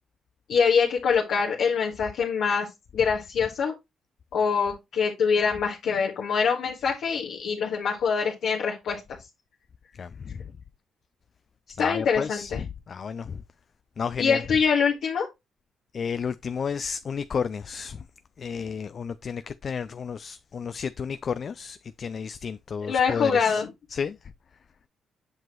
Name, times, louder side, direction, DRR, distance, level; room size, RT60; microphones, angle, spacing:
voice 1, 0.5-2.7 2.9-3.7 4.3-9.2 11.8-12.6 14.2-15.3 22.9-23.7, left 6 dB, 75° left, 1.6 m, -24 dB
voice 2, 10.0-10.5 11.8-13.4 14.0-14.4 15.9-18.0 18.4-23.6 23.9-24.2, left 6 dB, 55° left, 0.4 m, -32 dB
7.6 x 6.0 x 3.0 m
supercardioid pair, 50°, 0 cm